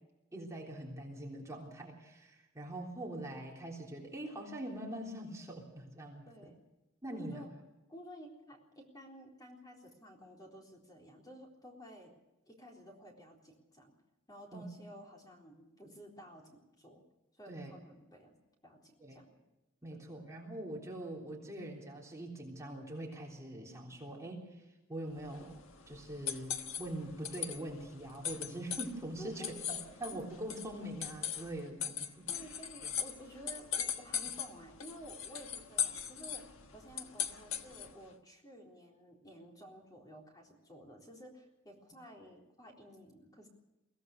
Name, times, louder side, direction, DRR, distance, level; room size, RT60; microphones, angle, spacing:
voice 1, 0.3-6.3 7.0-7.4 14.5-14.6 17.5-17.7 19.0-19.2 19.8-24.6 24.9-25.6 25.9-32.3, right 1 dB, 15° right, -2 dB, 3.5 m, -43 dB
voice 2, 6.3-6.6 7.1-7.5 7.9-12.1 12.5-14.0 14.3-17.0 17.4-18.3 18.6-19.4 19.9-20.0 29.2-29.6 30.1-30.2 32.3-36.4 36.7-43.5, equal, 20° left, 0 dB, 3.9 m, -53 dB
sound 1, 25.2-38.0, left 8 dB, 75° left, 1.5 m, -40 dB
23.5 x 16.5 x 6.6 m, 0.99 s
head